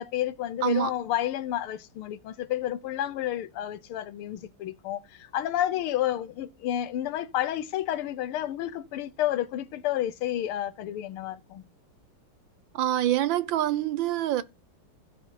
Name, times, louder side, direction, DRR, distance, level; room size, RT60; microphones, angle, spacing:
voice 1, 0.0-11.6, left 12 dB, 90° left, 1.7 m, -30 dB
voice 2, 12.7-14.4, right 12 dB, 70° right, 1.5 m, -25 dB
16.0 x 5.5 x 4.0 m
omnidirectional pair, 2.3 m